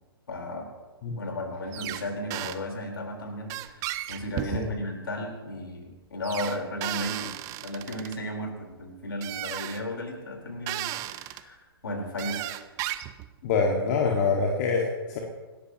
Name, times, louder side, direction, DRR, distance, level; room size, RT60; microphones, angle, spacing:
voice 1, 0.3-0.7 1.1-11.6 11.8-12.5, left 1 dB, 65° left, 1 dB, 4.4 m, -35 dB
sound 1, 1.7-2.0 2.3-2.6 3.5-4.9 6.2-8.2 9.2-9.8 10.7-11.4 12.2-13.3, right 15 dB, 25° right, 0.7 m, -34 dB
voice 2, 13.4-15.2, left 4 dB, 40° left, 0 dB, 2.1 m, -25 dB
27.0 x 13.0 x 3.1 m, 1.3 s
figure-of-eight pair, 120°, 13 cm